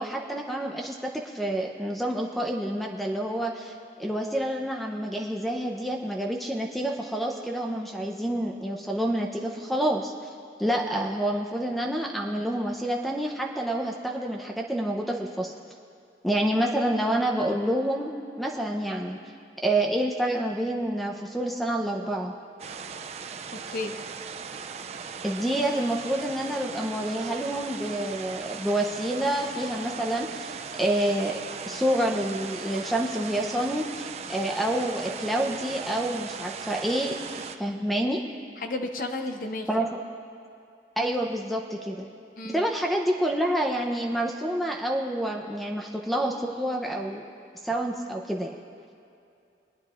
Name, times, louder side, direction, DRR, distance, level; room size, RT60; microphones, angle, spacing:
voice 1, 0.0-10.1 10.6-15.5 16.2-19.2 19.6-22.3 25.2-31.4 31.7-37.2 37.6-38.2 39.7-39.9 41.0-42.1 42.4-47.2 47.6-48.5, right 1 dB, ahead, 1 dB, 0.7 m, -28 dB
sound 1, 22.6-37.6, right 6 dB, 35° right, 0.3 m, -38 dB
voice 2, 23.5-23.9 38.6-39.7 42.4-42.7, left 2 dB, 50° left, 5 dB, 0.7 m, -33 dB
23.0 x 9.5 x 2.5 m, 2.6 s
head